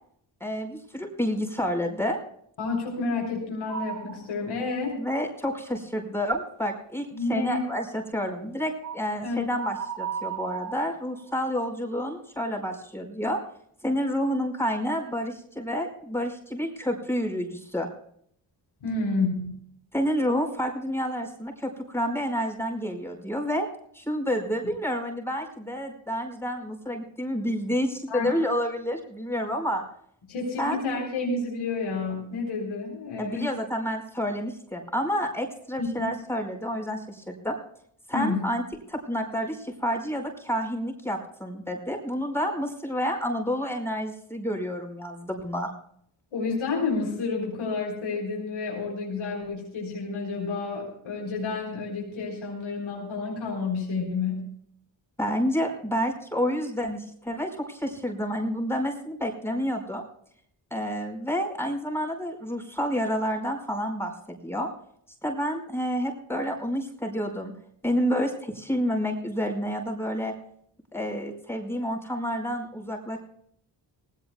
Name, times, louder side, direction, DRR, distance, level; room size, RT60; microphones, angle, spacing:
voice 1, 0.4-2.2 5.0-13.4 13.8-17.9 19.9-23.7 23.9-29.8 30.6-30.8 33.2-37.6 38.1-38.6 38.9-45.7 55.2-60.0 60.7-64.7 65.2-67.5 67.8-70.3 70.9-73.2, equal, 5° left, 3 dB, 5.0 m, -29 dB
voice 2, 2.6-5.0 7.1-7.7 9.2-9.5 18.8-19.6 28.1-28.3 30.3-33.5 35.8-36.1 38.1-38.5 46.3-54.5, left 3 dB, 75° left, -2 dB, 4.1 m, -30 dB
sound 1, 3.7-4.3 4.8-4.9 8.8-9.1 9.6-11.5, right 7 dB, 40° right, 2.2 m, -35 dB
19.5 x 16.5 x 2.3 m, 0.66 s
supercardioid pair, 45°, 48 cm